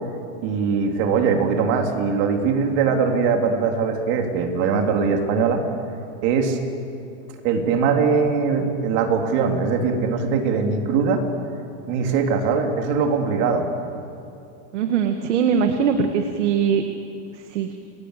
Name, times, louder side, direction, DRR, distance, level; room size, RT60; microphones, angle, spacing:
voice 1, 0.4-5.6 6.2-6.6 7.4-11.2 11.9-13.7, right 5 dB, 45° right, 3 dB, 3.7 m, -21 dB
voice 2, 14.7-16.8 17.3-17.7, right 6 dB, 80° right, 5 dB, 2.1 m, -21 dB
30.0 x 21.0 x 8.4 m, 2.6 s
supercardioid pair, 155°, 35 cm